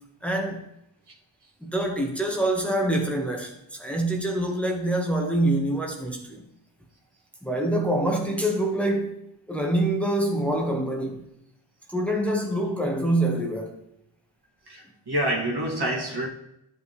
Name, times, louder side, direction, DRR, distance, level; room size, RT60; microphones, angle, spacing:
voice 1, 0.2-0.6 1.6-6.4 7.4-9.2 9.5-11.2 11.9-13.7, right 1 dB, 5° left, 0 dB, 1.6 m, -25 dB
voice 2, 14.7-16.3, right 1 dB, 55° right, -2 dB, 2.3 m, -27 dB
12.0 x 5.8 x 3.3 m, 0.79 s
wide cardioid pair, 65°, 46 cm